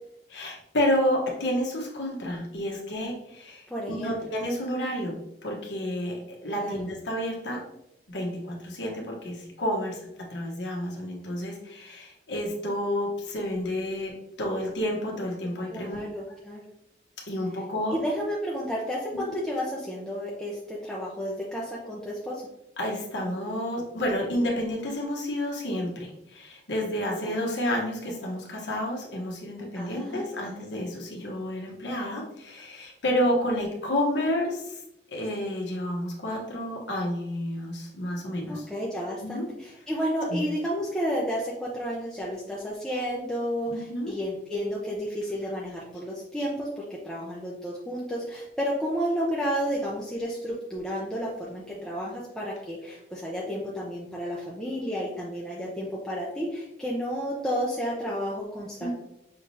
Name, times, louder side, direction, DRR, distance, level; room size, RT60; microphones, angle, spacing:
voice 1, 0.3-5.1 5.4-7.6 8.1-10.0 10.3-14.1 14.4-16.0 17.3-18.0 19.1-19.2 22.8-34.8 35.1-38.7 39.2-39.4 40.3-40.4 43.7-44.1 58.8-58.9, left 1 dB, 85° left, -1 dB, 1.1 m, -30 dB
voice 2, 3.7-4.2 6.6-6.8 15.7-16.6 17.9-22.4 27.3-27.4 29.7-30.6 38.5-58.9, equal, 5° left, -6 dB, 0.6 m, -31 dB
5.5 x 3.2 x 2.7 m, 0.82 s
head